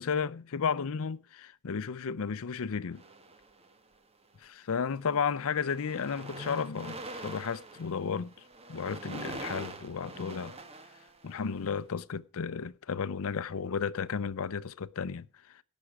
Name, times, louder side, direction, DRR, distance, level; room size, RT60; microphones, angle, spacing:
voice 1, 0.0-3.0 4.4-8.3 8.7-10.5 11.2-15.6, left 6 dB, 65° left, 0.5 m, -33 dB
Electromagnetic antenna sound, 2.9-3.9 4.7-4.9 5.2-11.7, right 2 dB, 25° right, 1.2 m, -45 dB
16.5 x 6.2 x 4.7 m
head